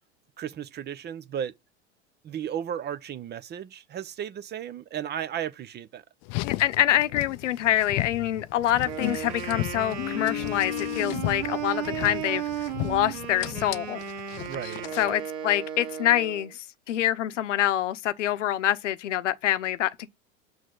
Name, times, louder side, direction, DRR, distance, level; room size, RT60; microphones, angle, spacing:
voice 1, 0.4-1.5 2.2-6.0 14.5-14.9, right 9 dB, 30° right, 0.7 m, -34 dB
Car, 6.2-15.2, left 20 dB, 45° left, 0.5 m, -34 dB
voice 2, 6.4-12.4 12.8-14.0 15.0-16.6 16.9-20.1, left 12 dB, 80° left, 0.8 m, -26 dB
Wind instrument woodwind instrument, 8.8-16.5, right 9 dB, 65° right, 2.3 m, -35 dB
6.8 x 6.1 x 3.8 m
hypercardioid pair, 90°, 36 cm